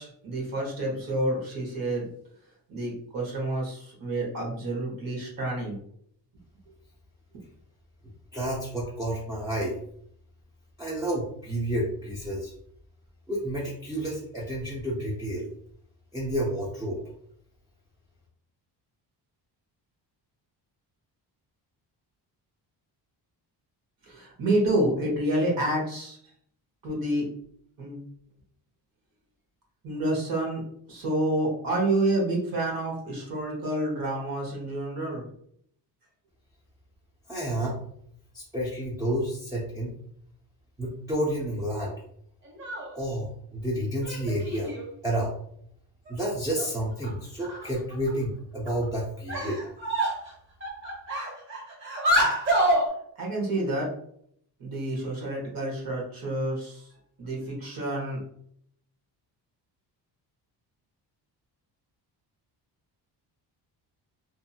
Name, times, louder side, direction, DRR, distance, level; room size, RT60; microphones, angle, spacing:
voice 1, 0.0-2.1 2.7-5.8 24.0-26.2 26.8-27.3 27.8-28.0 29.8-30.6 30.9-35.2 53.2-53.9 54.6-56.9 57.2-58.2, right 1 dB, 55° right, -2 dB, 1.1 m, -28 dB
voice 2, 8.3-9.8 10.8-12.5 13.3-15.5 16.1-17.0 37.3-37.8 38.3-39.9 40.8-41.9 42.9-44.7 45.0-45.3 46.1-49.6, right 1 dB, 10° right, -6 dB, 0.4 m, -30 dB
sound 1, 42.4-42.9 44.0-44.9 46.1-46.2 46.6-46.7 47.0-47.1 47.4-48.1 48.7-48.8 49.3-50.3 50.6-52.9, right 1 dB, 30° right, 0.8 m, -27 dB
2.6 x 2.4 x 2.7 m, 0.67 s
cardioid pair, 155°, 42 cm